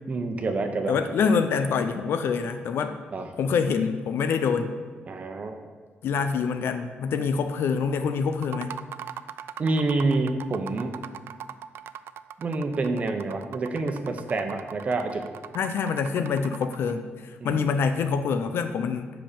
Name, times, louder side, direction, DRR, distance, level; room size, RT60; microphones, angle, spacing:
voice 1, 0.1-1.0 3.1-3.3 5.1-5.5 9.6-11.0 12.4-15.3 17.4-17.7, right 3 dB, 35° right, 5 dB, 0.9 m, -27 dB
voice 2, 0.9-3.0 3.4-4.7 6.0-8.8 15.5-19.1, left 5 dB, 75° left, 8 dB, 0.6 m, -26 dB
sound 1, 8.3-16.9, right 9 dB, 80° right, 0.4 m, -40 dB
7.7 x 5.6 x 6.9 m, 1.4 s
wide cardioid pair, 150°, 4 cm